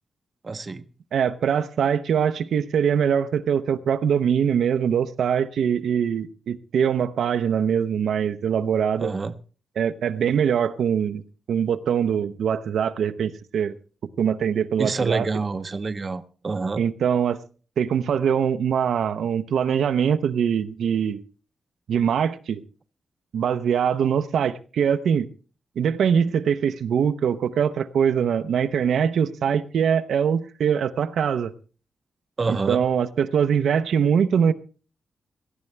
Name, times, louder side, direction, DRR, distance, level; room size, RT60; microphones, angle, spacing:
voice 1, 0.4-0.8 9.0-9.3 14.8-16.8 32.4-32.8, right 4 dB, 30° right, 11 dB, 0.7 m, -27 dB
voice 2, 1.1-9.1 9.8-11.2 11.5-13.8 14.2-15.3 16.8-17.4 17.8-21.2 21.9-22.6 23.3-25.3 25.8-31.5 32.5-34.5, right 7 dB, 85° right, 9 dB, 0.7 m, -23 dB
18.0 x 14.0 x 3.3 m, 0.35 s
wide cardioid pair, 140°, 0 cm